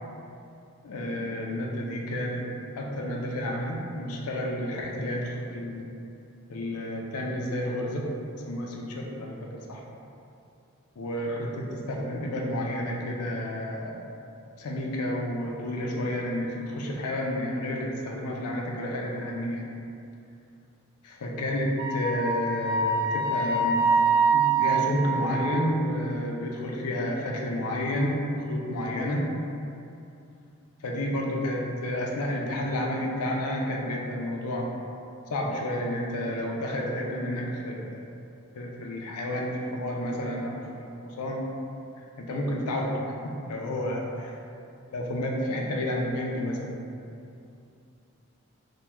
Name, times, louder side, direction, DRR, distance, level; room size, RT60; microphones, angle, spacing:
voice 1, 0.8-2.5 2.7-5.9 6.5-8.1 8.5-9.8 11.0-14.0 14.6-19.7 21.0-23.9 24.3-29.3 30.8-34.7 35.3-38.1 38.5-41.4 42.0-43.0 43.2-44.0 44.9-46.8, left 1 dB, 90° left, -1 dB, 0.5 m, -30 dB
Wind instrument woodwind instrument, 21.8-25.6, right 4 dB, 45° right, 0.7 m, -25 dB
2.9 x 2.2 x 3.3 m, 2.6 s
head